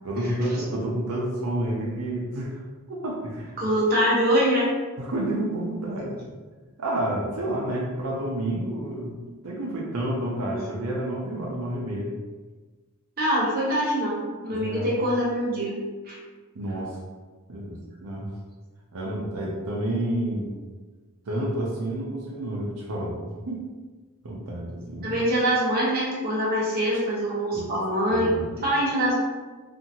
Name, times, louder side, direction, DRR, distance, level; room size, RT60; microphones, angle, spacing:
voice 1, 0.0-2.6 2.9-3.6 5.0-6.2 6.8-9.2 9.4-12.1 14.5-15.0 16.5-17.0 17.5-18.3 18.9-20.6 21.3-23.7 24.2-25.2 27.5-27.6 28.1-28.5, right 1 dB, 85° right, -3 dB, 0.6 m, -29 dB
voice 2, 3.6-4.7 13.2-15.7 16.1-16.2 25.0-29.1, equal, 45° right, -6 dB, 0.9 m, -24 dB
2.8 x 2.5 x 2.7 m, 1.3 s
head